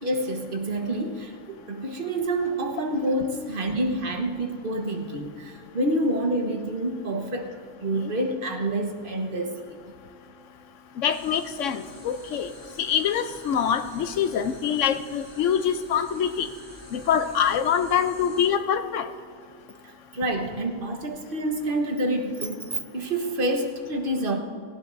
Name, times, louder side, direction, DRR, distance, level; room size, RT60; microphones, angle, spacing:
voice 1, 0.0-7.5 7.8-9.8 19.8-24.4, right 1 dB, 45° right, 3 dB, 1.3 m, -28 dB
voice 2, 11.0-12.5 12.8-16.5 16.9-19.1, left 8 dB, 70° left, 10 dB, 1.0 m, -25 dB
sound 1, 11.1-18.5, equal, 20° left, 2.5 m, -48 dB
17.5 x 15.5 x 2.6 m, 2.2 s
omnidirectional pair, 1.4 m